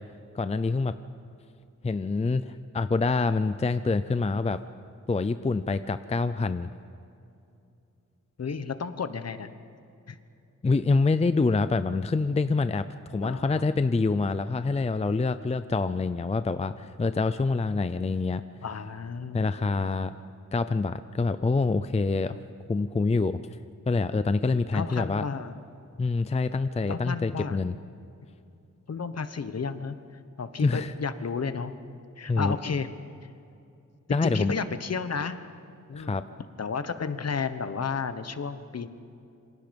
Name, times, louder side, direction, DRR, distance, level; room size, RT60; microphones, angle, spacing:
voice 1, 0.3-0.9 1.8-4.6 5.1-6.7 10.6-18.4 19.3-20.1 20.5-22.4 22.7-23.4 23.9-25.2 26.0-27.8 30.6-30.9 32.3-32.5 34.1-34.5 35.9-36.2, left 3 dB, 20° left, 12 dB, 0.5 m, -26 dB
voice 2, 8.4-9.5 10.1-10.2 13.1-13.6 18.6-19.5 19.8-20.0 24.7-25.5 26.9-27.6 28.9-30.0 30.4-31.7 32.2-32.9 34.1-35.4 35.9-36.2 36.6-38.9, left 5 dB, 55° left, 11 dB, 1.1 m, -32 dB
28.0 x 25.5 x 5.3 m, 2.6 s
wide cardioid pair, 170°, 31 cm